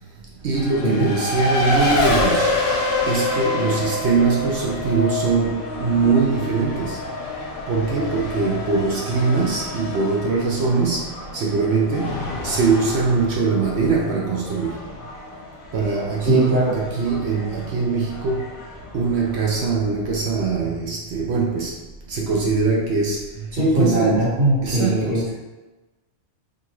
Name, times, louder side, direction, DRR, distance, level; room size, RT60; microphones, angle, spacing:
voice 1, 0.4-2.6 3.1-7.0 7.7-14.9 15.7-18.6 18.9-23.5 23.8-24.3 24.6-25.3, right 4 dB, 60° right, -3 dB, 0.8 m, -22 dB
Race car auto racing, 0.5-19.7, left 2 dB, 90° left, 1.2 m, -28 dB
voice 2, 16.2-16.7 23.5-25.3, right 1 dB, 40° right, -12 dB, 1.5 m, -19 dB
3.8 x 2.5 x 2.9 m, 1.1 s
omnidirectional pair, 1.4 m